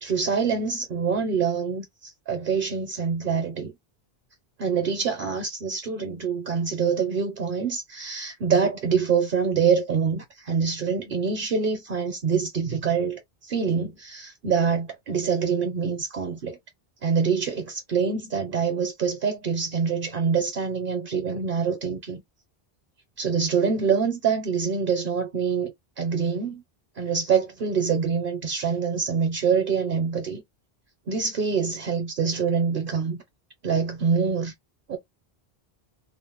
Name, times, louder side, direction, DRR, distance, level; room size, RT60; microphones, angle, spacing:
voice 1, 0.0-3.7 4.6-16.6 17.0-22.2 23.2-25.7 26.0-26.6 27.0-30.4 31.1-33.2 33.6-34.5 34.9-35.0, right 6 dB, 60° right, 0.8 m, -25 dB
2.4 x 2.0 x 3.0 m
omnidirectional pair, 1.0 m